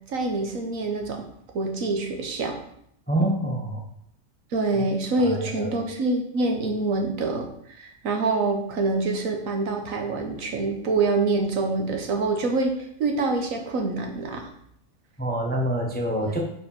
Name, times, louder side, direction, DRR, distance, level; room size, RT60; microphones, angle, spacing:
voice 1, 0.1-1.2 1.5-2.6 4.5-7.5 7.8-14.5 16.2-16.3, right 3 dB, 75° right, 3 dB, 1.4 m, -26 dB
voice 2, 3.1-3.8 5.2-5.8 15.2-16.4, right 1 dB, 10° left, 0 dB, 0.6 m, -26 dB
4.9 x 4.3 x 5.2 m, 0.70 s
omnidirectional pair, 1.4 m